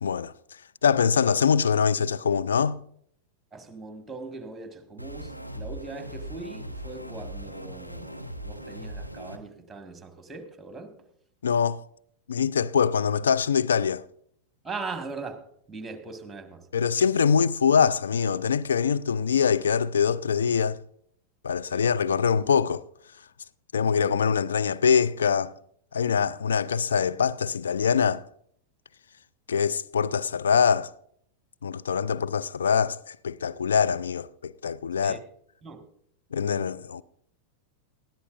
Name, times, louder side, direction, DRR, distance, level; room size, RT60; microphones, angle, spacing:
voice 1, 0.0-0.3 0.8-2.8 11.4-11.8 12.3-14.0 16.7-20.8 21.4-22.8 23.7-25.5 25.9-28.2 29.5-30.9 31.6-35.2 36.3-37.0, left 6 dB, 70° left, 0.4 m, -24 dB
voice 2, 3.5-10.9 14.6-15.4 15.7-16.6 21.7-21.8 35.0-35.2 35.6-35.8, right 3 dB, 10° right, 1.8 m, -40 dB
sound 1, 5.0-9.4, right 1 dB, 90° left, 1.0 m, -39 dB
19.5 x 13.5 x 2.6 m
figure-of-eight pair, 90°, 0 cm